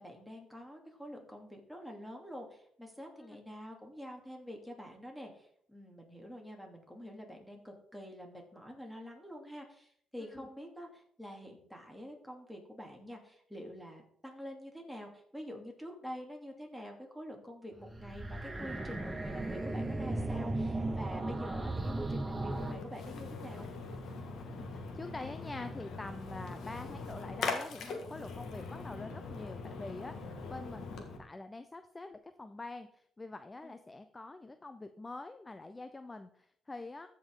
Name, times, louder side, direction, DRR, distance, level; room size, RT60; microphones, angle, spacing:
voice 1, 0.0-23.7 33.6-33.7, equal, ahead, 1 dB, 2.6 m, -47 dB
sound 1, 17.8-22.7, right 2 dB, 15° right, 0.9 m, -36 dB
Splash splatter, 22.5-31.2, left 4 dB, 70° left, 1.8 m, -41 dB
voice 2, 24.6-30.1 30.5-37.1, left 2 dB, 20° left, 9 dB, 0.6 m, -45 dB
14.0 x 5.4 x 3.8 m, 0.65 s
cardioid pair, 90°, 0 cm